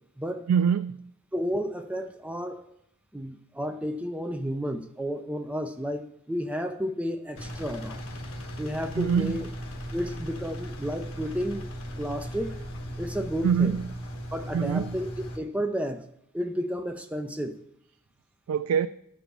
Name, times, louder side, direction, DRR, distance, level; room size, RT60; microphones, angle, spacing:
voice 1, 0.5-1.0 8.9-9.4 13.4-13.9 14.5-15.0 18.5-18.9, right 7 dB, 85° right, 0.3 m, -24 dB
voice 2, 1.3-2.6 3.1-8.0 8.6-9.5 9.9-11.7 12.0-12.5 13.0-13.8 14.3-16.0 16.3-17.6, equal, 5° right, 0.5 m, -32 dB
Engine, 7.4-15.4, equal, 80° left, 1.3 m, -38 dB
11.5 x 4.6 x 5.3 m
head